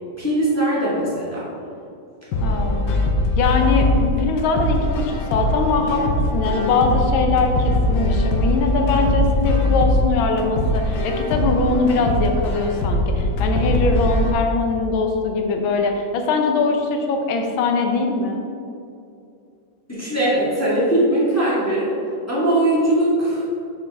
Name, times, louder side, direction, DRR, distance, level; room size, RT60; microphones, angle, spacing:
voice 1, 0.2-1.4 19.9-21.9 22.3-23.4, right 1 dB, 10° left, -8 dB, 1.1 m, -20 dB
sound 1, 2.3-14.3, left 1 dB, 70° left, 1.3 m, -21 dB
voice 2, 2.4-2.8 3.4-6.0 6.3-18.4, left 3 dB, 85° left, 4 dB, 1.5 m, -21 dB
7.6 x 4.2 x 3.4 m, 2.5 s
omnidirectional pair, 2.2 m